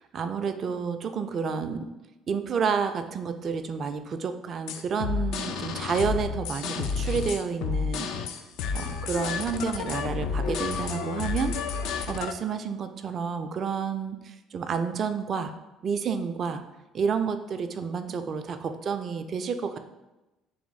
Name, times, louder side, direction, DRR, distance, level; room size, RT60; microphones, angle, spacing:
voice 1, 0.0-1.9 2.3-8.1 8.7-11.5 12.1-15.5 15.8-16.6 16.9-19.8, right 6 dB, 45° right, 8 dB, 0.3 m, -30 dB
sound 1, 4.7-12.3, left 5 dB, 65° left, 0.3 m, -30 dB
3.4 x 3.0 x 4.0 m, 1.0 s
figure-of-eight pair, 55°, 0 cm